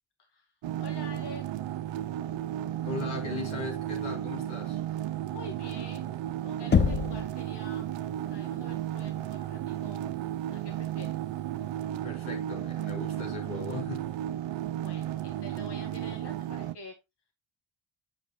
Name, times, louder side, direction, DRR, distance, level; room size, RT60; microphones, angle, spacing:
sound 1, 0.6-16.7, right 12 dB, 70° right, 0.7 m, -34 dB
voice 1, 0.8-1.4 5.3-7.9 8.3-10.0 10.5-11.1 14.8-17.0, left 3 dB, 60° left, 1.9 m, -46 dB
voice 2, 2.8-4.8 12.0-14.1, left 4 dB, 90° left, 3.1 m, -38 dB
Knock, 6.7-7.4, left 7 dB, 25° left, 0.4 m, -24 dB
9.0 x 5.1 x 2.3 m
cardioid pair, 85°, 46 cm